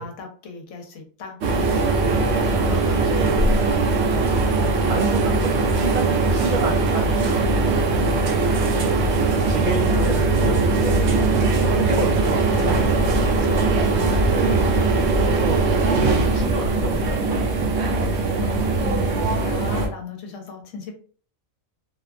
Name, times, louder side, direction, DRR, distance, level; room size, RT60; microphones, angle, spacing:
voice 1, 0.0-1.4 2.6-3.1 7.6-7.8 9.0-9.2 12.5-13.8 14.2-14.3 18.4-20.9, left 4 dB, 70° left, 3 dB, 1.0 m, -37 dB
sound 1, 1.4-19.9, right 3 dB, 60° right, 0.9 m, -20 dB
voice 2, 2.0-2.6 2.9-3.4 4.5-7.6 8.1-8.5 8.8-11.4 11.7-12.9 14.3-18.1, right 3 dB, 80° right, -1 dB, 0.4 m, -30 dB
sound 2, 7.6-13.3, left 11 dB, 90° left, 1.1 m, -35 dB
sound 3, 12.7-17.1, left 1 dB, 25° left, 0.5 m, -30 dB
2.8 x 2.2 x 2.4 m, 0.42 s
omnidirectional pair, 1.4 m